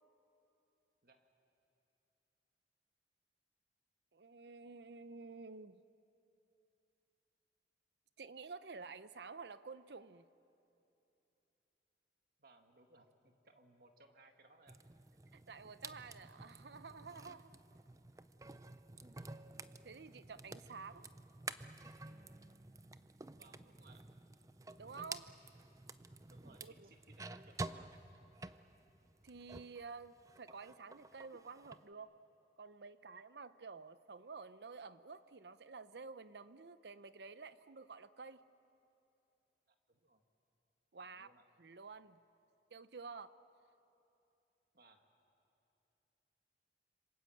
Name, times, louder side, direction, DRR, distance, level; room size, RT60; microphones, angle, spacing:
voice 1, 4.1-5.8 8.2-10.3 15.3-17.6 19.8-21.1 24.8-25.3 26.6-26.9 29.2-32.2 32.6-38.4 40.9-41.3 41.6-42.2 42.7-43.3, right 4 dB, 70° right, 0.7 m, -51 dB
voice 2, 12.4-14.8 23.4-24.1 26.3-27.9 39.9-40.3 41.0-41.4 44.7-45.1, right 2 dB, 55° right, 1.9 m, -65 dB
sound 1, 14.7-29.8 30.1-31.8, right 3 dB, 20° right, 0.5 m, -51 dB
27.5 x 26.0 x 7.8 m
head